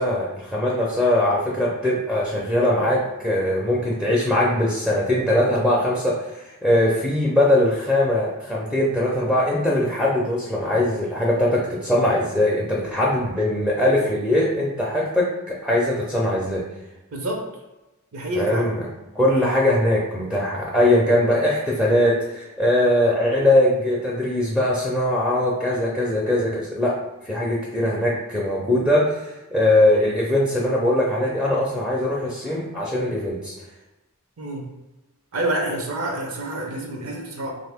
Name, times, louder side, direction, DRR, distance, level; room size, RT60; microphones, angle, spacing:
voice 1, 0.0-6.1 6.6-16.6 18.4-18.8 19.1-26.9 27.2-33.5, left 1 dB, ahead, -4 dB, 0.5 m, -21 dB
voice 2, 17.1-17.4 18.1-18.7 34.4-34.6 35.3-37.5, right 1 dB, 75° right, 1 dB, 0.7 m, -27 dB
3.0 x 2.7 x 3.4 m, 1.0 s
head